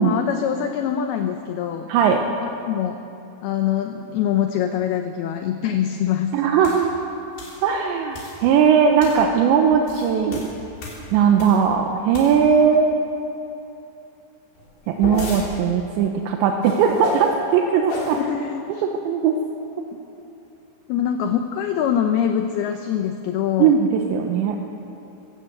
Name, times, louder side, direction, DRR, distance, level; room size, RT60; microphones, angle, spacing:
voice 1, 0.0-1.9 2.4-3.0 3.4-6.4 18.1-18.8 20.9-23.8, left 9 dB, 75° left, 5 dB, 2.4 m, -24 dB
voice 2, 6.3-7.0 7.6-10.5 11.1-13.0 14.9-18.2 19.1-19.4 23.6-24.6, right 7 dB, 75° right, 3 dB, 3.1 m, -18 dB
sound 1, 6.6-6.9 7.4-7.6 8.1-8.5 9.0-9.3 9.7-11.7 12.1-12.6 14.5-15.5 16.6-17.3 17.9-18.2, left 2 dB, 60° left, 5.5 m, -32 dB
22.5 x 16.5 x 8.0 m, 2.9 s
omnidirectional pair, 5.4 m